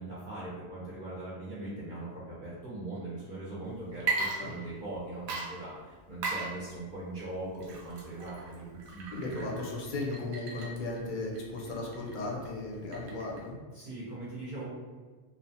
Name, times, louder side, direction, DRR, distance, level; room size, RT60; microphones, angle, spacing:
voice 1, 0.0-9.5 13.7-14.7, right 2 dB, 55° right, -8 dB, 0.7 m, -40 dB
Water / Liquid, 3.9-5.0 5.3-13.5, right 3 dB, 85° right, 0.9 m, -38 dB
voice 2, 9.1-13.6, left 2 dB, 60° left, -2 dB, 0.6 m, -36 dB
2.6 x 2.1 x 2.7 m, 1.5 s
omnidirectional pair, 1.1 m